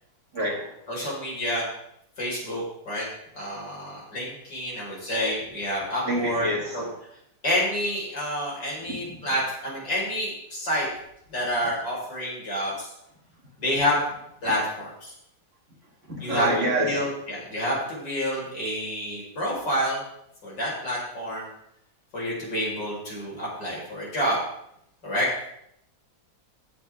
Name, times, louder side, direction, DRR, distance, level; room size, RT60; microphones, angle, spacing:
voice 1, 0.3-0.7 6.1-6.8 16.1-17.0, right 1 dB, 45° right, -3 dB, 2.9 m, -26 dB
voice 2, 0.9-1.7 2.2-3.1 3.3-6.9 7.4-10.9 11.3-12.9 13.6-14.0 14.4-15.1 16.2-16.5 16.8-20.0 20.4-21.5 22.1-24.4 25.0-25.3, equal, 80° left, -5 dB, 5.6 m, -28 dB
15.5 x 8.5 x 3.7 m, 0.75 s
omnidirectional pair, 1.8 m